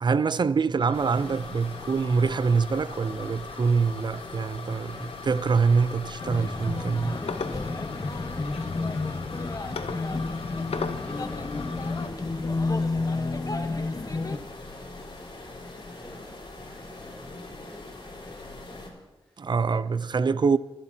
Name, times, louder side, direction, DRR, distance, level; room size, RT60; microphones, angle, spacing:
voice 1, 0.0-7.2 19.4-20.6, right 5 dB, 50° right, 0.4 m, -25 dB
sound 1, 0.8-12.1, left 5 dB, 80° left, 0.8 m, -40 dB
sound 2, 0.9-18.9, left 2 dB, 55° left, 3.6 m, -42 dB
sound 3, 6.2-14.4, left 3 dB, 35° left, 1.0 m, -30 dB
voice 2, 7.0-9.4 9.7-13.2 13.8-15.1 16.0-16.3 16.6-19.5 19.8-20.2, equal, 5° left, 5.1 m, -52 dB
23.5 x 11.0 x 2.7 m
wide cardioid pair, 85°, 10 cm